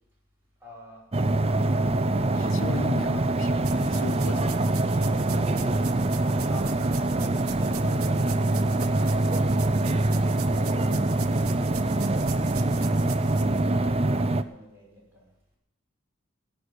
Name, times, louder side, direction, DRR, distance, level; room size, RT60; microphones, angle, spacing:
voice 1, 0.6-1.1 1.5-1.6 4.3-7.8 8.5-9.6 10.3-13.4 14.3-15.3, equal, 10° right, 5.7 m, -47 dB
sound 1, 1.1-14.4, right 2 dB, 30° right, 0.6 m, -24 dB
voice 2, 2.3-4.5 7.8-8.3, left 4 dB, 60° left, 0.5 m, -38 dB
sound 2, 3.6-13.7, right 9 dB, 80° right, 1.1 m, -42 dB
16.0 x 6.7 x 9.8 m
head